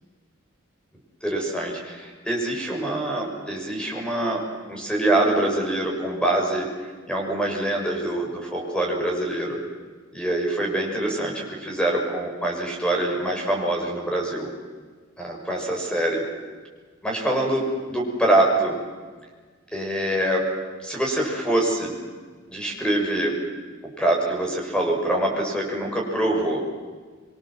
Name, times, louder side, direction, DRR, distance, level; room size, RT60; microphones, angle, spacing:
voice 1, 1.2-4.4 4.7-6.7 7.1-9.6 10.1-14.5 15.2-16.2 17.0-17.6 17.9-18.8 19.7-20.4 20.8-21.9 22.5-23.3 24.0-26.6, right 1 dB, 5° left, 0 dB, 6.6 m, -24 dB
25.5 x 24.0 x 7.7 m, 1.5 s
head